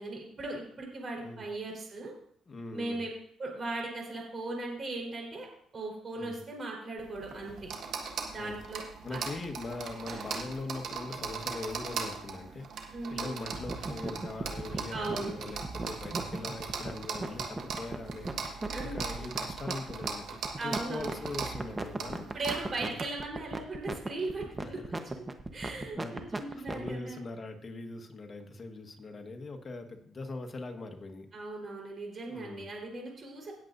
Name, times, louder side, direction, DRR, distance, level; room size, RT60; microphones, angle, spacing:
voice 1, 0.0-2.1 2.7-3.1 3.4-5.5 5.7-7.7 8.3-8.8 9.1-9.2 12.9-13.4 14.9-15.3 18.6-19.0 20.6-21.1 22.3-24.8 25.5-27.2 31.3-33.5, right 2 dB, 40° right, 0 dB, 4.2 m, -38 dB
voice 2, 2.5-3.0 6.2-6.4 8.4-8.5 9.0-22.3 24.6-25.1 25.5-26.2 26.6-31.3 32.3-32.7, left 3 dB, 40° left, 5 dB, 1.5 m, -41 dB
sound 1, 7.0-23.0, right 5 dB, 70° right, 1.6 m, -39 dB
sound 2, 13.5-26.9, right 2 dB, 25° right, 1.1 m, -37 dB
18.0 x 7.9 x 2.7 m, 0.65 s
cardioid pair, 90°, 0 cm